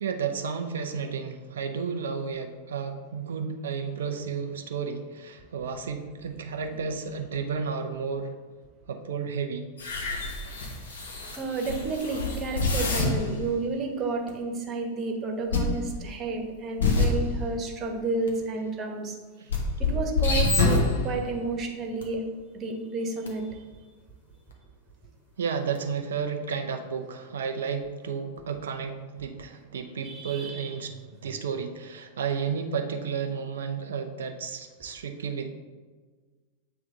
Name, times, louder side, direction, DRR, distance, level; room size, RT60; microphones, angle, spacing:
voice 1, 0.0-8.3 8.9-9.7 19.4-19.5 25.4-30.9 31.2-35.5, right 6 dB, 65° right, 6 dB, 0.5 m, -32 dB
sound 1, 9.8-13.3 14.3-14.4 15.5-15.8 16.8-17.3 18.3-18.4 19.5-21.2 22.0-22.1 23.3-23.4 25.8-25.9, left 3 dB, 65° left, 1.1 m, -26 dB
voice 2, 11.4-19.2 19.8-22.2 22.5-23.5 30.0-30.7, right 3 dB, 25° right, 2 dB, 1.1 m, -31 dB
7.8 x 3.4 x 3.7 m, 1.4 s
figure-of-eight pair, 90°, 0 cm